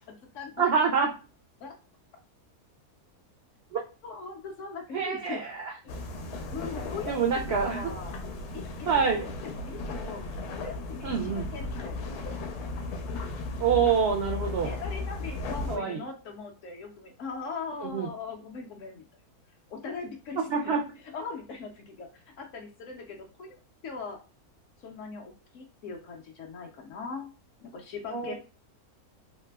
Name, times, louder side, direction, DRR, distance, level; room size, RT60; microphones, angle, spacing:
voice 1, 0.1-0.7 1.6-1.7 4.0-5.4 6.5-7.2 7.5-8.2 8.5-10.2 10.6-12.3 14.6-19.0 19.7-20.7 21.1-22.1 22.4-23.6 23.8-24.2 24.8-27.3 27.6-28.3, left 4 dB, 65° left, 2 dB, 0.8 m, -40 dB
voice 2, 0.6-1.1 3.7-3.8 4.9-5.7 7.1-7.9 8.9-9.3 11.0-11.4 13.6-14.7 15.7-16.0 17.8-18.1 20.4-20.8 28.1-28.3, right 6 dB, 80° right, 2 dB, 0.5 m, -26 dB
sound 1, 5.9-15.8, left 2 dB, 90° left, 1.2 m, -36 dB
3.3 x 2.9 x 2.2 m, 0.34 s
omnidirectional pair, 1.6 m